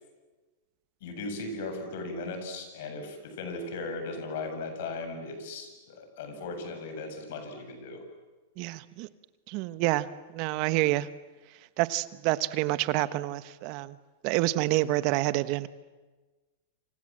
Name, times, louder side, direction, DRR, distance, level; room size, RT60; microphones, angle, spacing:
voice 1, 1.0-8.0, left 3 dB, 65° left, 6 dB, 7.7 m, -37 dB
voice 2, 8.6-9.1 9.5-10.1 10.3-11.1 11.8-14.0 14.2-15.7, right 17 dB, 50° right, 14 dB, 1.2 m, -28 dB
29.0 x 27.0 x 7.7 m, 1.2 s
hypercardioid pair, 125°, 0 cm